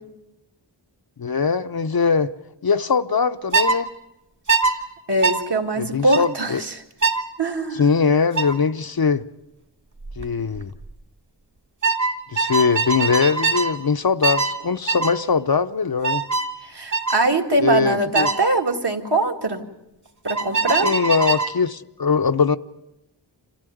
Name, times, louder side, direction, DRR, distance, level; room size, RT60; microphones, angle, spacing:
voice 1, 1.2-2.3 2.6-3.9 5.8-6.6 7.7-9.2 10.2-10.7 12.3-16.2 17.6-18.3 20.8-22.6, left 5 dB, 55° left, 0.8 m, -21 dB
sound 1, 3.5-3.8 4.5-4.7 5.2-5.4 6.1-6.3 7.0-7.3 8.4-8.6 10.0-10.3 10.6-10.9 11.8-13.8 14.2-14.6 14.9-15.2 16.0-16.5 16.9-17.2 18.1-18.4 20.3-21.6, right 4 dB, 40° right, 1.9 m, -22 dB
voice 2, 5.1-6.7 7.4-7.8 16.6-19.6 20.2-20.9, right 2 dB, 65° right, 2.3 m, -22 dB
26.5 x 15.0 x 9.2 m
wide cardioid pair, 65°, 43 cm